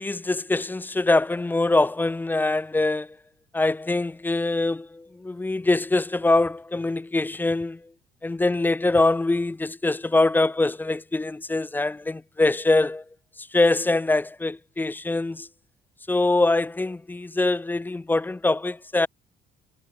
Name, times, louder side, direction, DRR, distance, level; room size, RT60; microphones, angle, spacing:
voice 1, 0.0-3.1 3.5-7.8 8.2-13.0 13.4-15.5 16.1-19.1, left 2 dB, 10° left, 0.5 m, -23 dB
cardioid pair, 110°, 17 cm